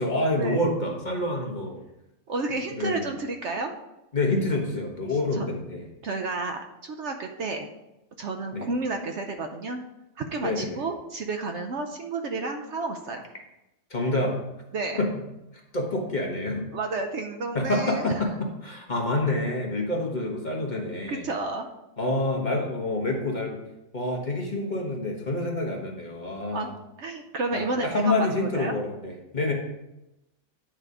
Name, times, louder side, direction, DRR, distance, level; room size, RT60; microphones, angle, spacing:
voice 1, 0.0-1.8 2.7-3.0 4.1-5.9 8.5-8.7 10.4-10.8 13.9-14.4 15.0-15.1 15.7-16.7 17.5-18.3 18.6-21.3 22.0-23.6 23.9-26.7 27.5-29.5, left 2 dB, 35° left, 0 dB, 1.3 m, -27 dB
voice 2, 2.3-3.7 5.3-5.5 6.0-7.7 8.2-9.8 10.2-13.3 14.7-15.0 16.7-18.1 21.1-21.7 26.5-28.8, right 3 dB, 60° right, 4 dB, 0.9 m, -31 dB
9.1 x 4.1 x 4.9 m, 0.92 s
omnidirectional pair, 1.5 m